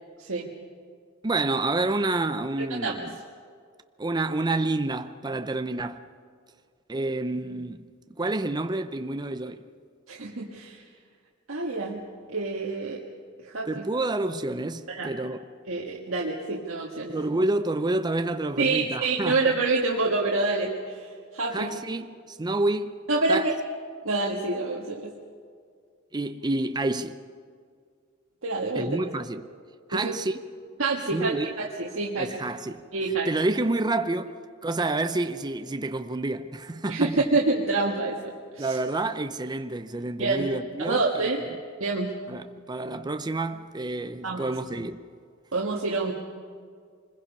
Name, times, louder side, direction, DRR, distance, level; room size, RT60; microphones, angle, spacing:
voice 1, 0.2-0.5 2.6-2.9 10.1-10.8 11.5-12.0 12.3-13.0 13.4-13.8 14.9-15.1 15.7-17.2 18.6-21.7 23.1-23.5 24.0-25.1 28.4-28.9 29.9-30.2 30.8-32.3 32.9-33.3 36.9-38.8 40.2-40.5 40.8-41.4 41.8-42.1 44.2-44.5 45.5-46.1, right 3 dB, 75° right, 1.7 m, -27 dB
voice 2, 1.2-3.2 4.0-6.0 6.9-7.9 8.2-9.6 13.7-15.4 17.1-19.6 21.5-22.9 23.3-23.5 26.1-27.2 28.7-29.5 29.9-30.4 31.1-31.5 32.2-32.8 33.3-34.3 34.6-37.3 38.6-41.3 42.3-45.0, right 2 dB, 20° right, 0.6 m, -28 dB
25.5 x 21.0 x 5.4 m
head